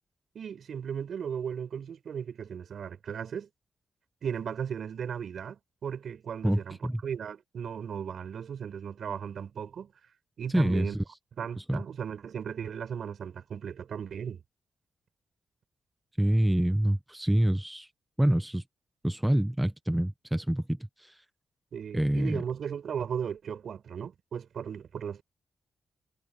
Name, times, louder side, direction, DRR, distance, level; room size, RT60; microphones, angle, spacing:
voice 1, 0.3-3.5 4.2-9.9 10.4-11.0 11.4-14.4 21.7-25.2, right 7 dB, 65° right, 7.2 m, -36 dB
voice 2, 6.4-7.0 10.5-11.0 11.6-11.8 16.2-17.9 18.2-18.6 19.0-21.2 21.9-22.4, right 1 dB, 5° right, 0.8 m, -26 dB
cardioid pair, 120°, 0 cm